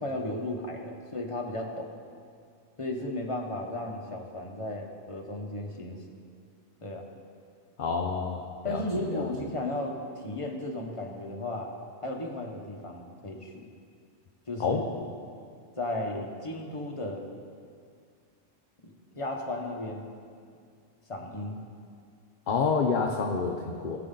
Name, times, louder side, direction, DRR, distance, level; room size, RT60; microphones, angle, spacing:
voice 1, 0.0-1.9 2.8-6.0 6.8-7.1 8.6-10.0 10.2-11.7 12.0-13.7 14.5-15.1 15.8-17.2 18.8-20.1 21.1-21.6, left 1 dB, 25° left, 0 dB, 1.2 m, -35 dB
voice 2, 7.8-9.3 14.6-14.9 22.5-24.0, left 5 dB, 50° left, 2 dB, 0.7 m, -28 dB
19.5 x 6.9 x 3.9 m, 2.2 s
omnidirectional pair, 1.3 m